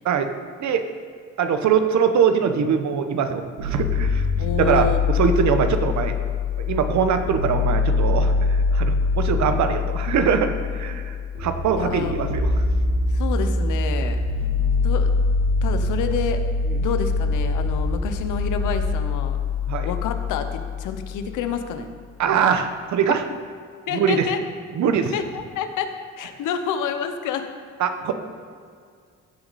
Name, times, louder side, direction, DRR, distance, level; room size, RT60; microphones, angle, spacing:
voice 1, 1.4-4.3 4.6-4.9 5.1-6.1 6.6-12.6 16.7-16.8 19.7-19.9 22.2-23.2 23.9-24.3 24.8-25.1 27.8-28.1, right 7 dB, 70° right, 8 dB, 0.9 m, -22 dB
sound 1, 3.6-21.5, left 4 dB, 85° right, 3.0 m, -24 dB
voice 2, 4.4-5.0 11.8-12.2 13.1-14.2 14.8-15.1 15.6-16.4 16.8-19.4 19.8-21.9 23.9-24.4 25.1-27.5, left 7 dB, 85° left, 8 dB, 0.9 m, -28 dB
15.5 x 6.1 x 4.1 m, 2.1 s
cardioid pair, 90°, 30 cm